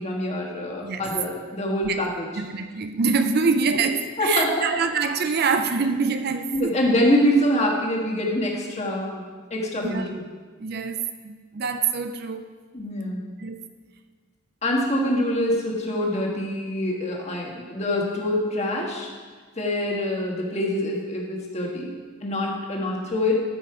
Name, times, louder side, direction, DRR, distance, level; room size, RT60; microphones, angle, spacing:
voice 1, 0.0-2.3 4.2-4.7 6.5-10.2 12.7-13.2 14.6-19.1 19.6-21.9 22.2-23.4, left 1 dB, 30° left, -1 dB, 1.5 m, -25 dB
voice 2, 2.4-6.7 9.8-10.2 10.6-12.5 13.4-13.6, right 5 dB, 50° right, 8 dB, 0.5 m, -25 dB
13.5 x 5.6 x 4.8 m, 1.5 s
head